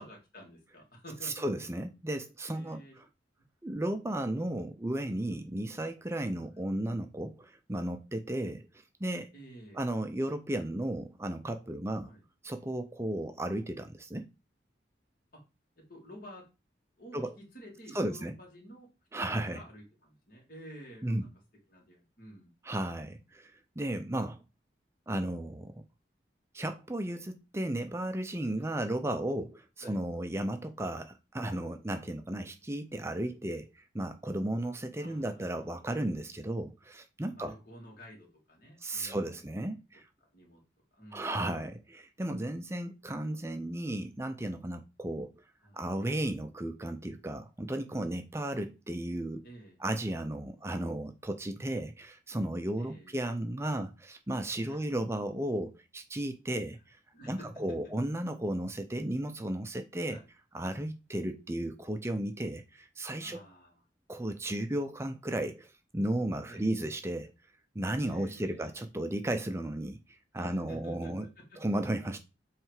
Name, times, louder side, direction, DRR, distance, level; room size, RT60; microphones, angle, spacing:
voice 1, 0.0-1.4 2.5-3.0 5.6-5.8 6.4-6.6 9.3-9.8 12.0-12.2 15.9-16.5 17.0-18.9 19.5-21.3 21.7-22.5 28.6-28.7 29.8-30.0 35.0-35.6 37.2-39.4 40.3-40.6 41.0-41.4 45.6-45.8 49.4-49.8 52.8-53.2 54.7-54.8 57.1-57.5 60.0-60.3 63.2-63.8 66.5-66.7 68.1-68.8 70.4-71.6, equal, 50° left, 2.5 m, -51 dB
voice 2, 1.2-3.1 3.6-8.7 9.0-9.3 9.7-12.1 12.4-14.3 17.1-17.4 17.9-18.4 19.1-19.6 21.0-21.3 22.6-24.4 25.1-25.8 26.5-37.6 38.8-40.1 41.1-45.3 45.7-49.4 49.8-57.0 57.3-60.2 60.5-63.4 64.1-67.3 67.7-71.3 71.6-72.2, right 1 dB, 15° right, 0.5 m, -34 dB
7.6 x 3.3 x 4.8 m
head